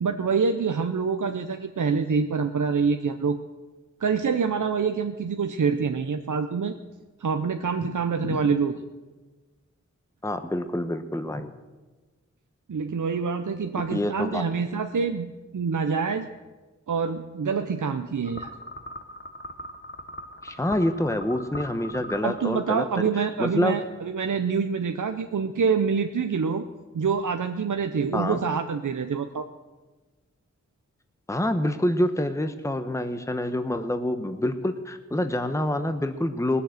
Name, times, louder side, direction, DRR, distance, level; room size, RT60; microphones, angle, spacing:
voice 1, 0.0-3.4 4.0-6.8 7.2-8.8 12.7-16.3 16.9-18.5 22.2-26.7 26.9-29.5, right 5 dB, 85° right, 7 dB, 0.7 m, -26 dB
voice 2, 10.2-11.5 13.9-14.4 20.4-22.8 23.1-23.8 28.1-28.4 31.3-36.6, left 1 dB, 10° left, 8 dB, 0.9 m, -27 dB
sound 1, 18.2-23.0, left 1 dB, 40° left, 1.1 m, -40 dB
19.0 x 7.0 x 7.8 m, 1.2 s
wide cardioid pair, 45°, 30 cm